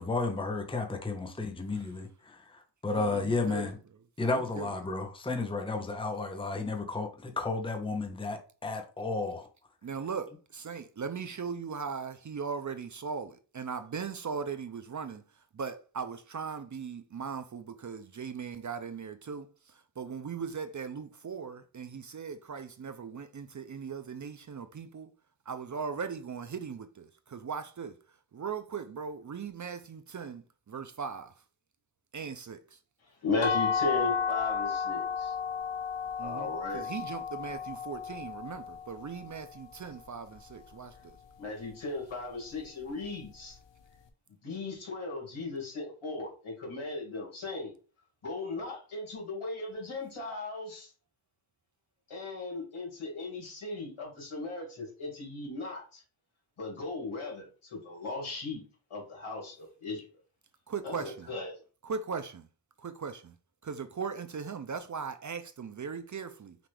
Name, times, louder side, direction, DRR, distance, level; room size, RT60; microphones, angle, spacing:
voice 1, 0.0-3.8 4.2-9.5, left 3 dB, 10° left, 0.7 m, -33 dB
voice 2, 3.0-3.7 4.3-4.7 9.8-15.2 15.5-19.5 20.0-25.1 25.5-27.9 28.3-31.3 32.1-32.8 36.2-41.2 60.7-61.3 61.8-62.5 62.8-63.3 63.6-66.6, right 6 dB, 40° right, 0.4 m, -39 dB
voice 3, 33.2-35.3 36.2-36.8 41.4-43.6 44.4-47.7 48.2-50.9 52.1-56.0 56.6-58.6 58.9-60.0 60.8-61.6, left 3 dB, 80° left, 2.2 m, -37 dB
sound 1, 33.4-39.2, left 6 dB, 65° left, 0.7 m, -33 dB
5.8 x 2.4 x 3.4 m
wide cardioid pair, 95°, 47 cm